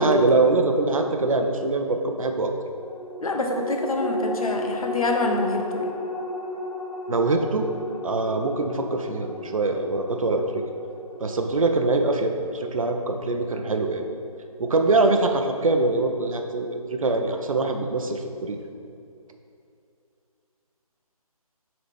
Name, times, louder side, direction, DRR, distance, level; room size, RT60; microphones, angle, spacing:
voice 1, 0.0-2.5 7.1-7.7 8.0-10.6 11.2-14.0 14.6-18.6, right 2 dB, 65° right, 5 dB, 0.6 m, -23 dB
sound 1, 2.8-13.6 14.0-14.1, left 1 dB, 90° left, 0.7 m, -34 dB
voice 2, 3.2-5.9, left 2 dB, 70° left, 2 dB, 0.9 m, -26 dB
6.8 x 4.0 x 3.5 m, 2.5 s
figure-of-eight pair, 155°, 19 cm